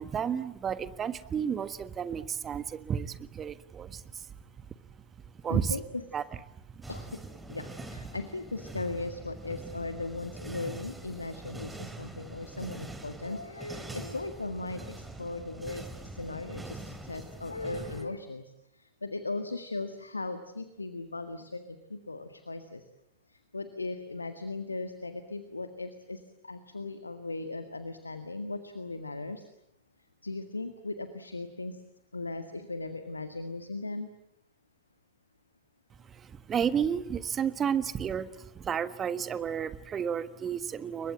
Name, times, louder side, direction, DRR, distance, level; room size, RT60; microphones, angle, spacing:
voice 1, 0.0-4.3 5.4-5.7 6.1-6.2 6.8-6.9 36.0-41.1, right 7 dB, 25° right, 14 dB, 1.4 m, -32 dB
voice 2, 5.5-6.0 6.9-7.2 7.5-22.8 23.3-29.5 30.2-31.8 32.1-34.1, left 3 dB, 80° left, 9 dB, 1.7 m, -38 dB
sound 1, 6.8-18.0, right 2 dB, 5° right, 3.7 m, -44 dB
29.5 x 23.5 x 7.6 m, 0.85 s
figure-of-eight pair, 90°, 0 cm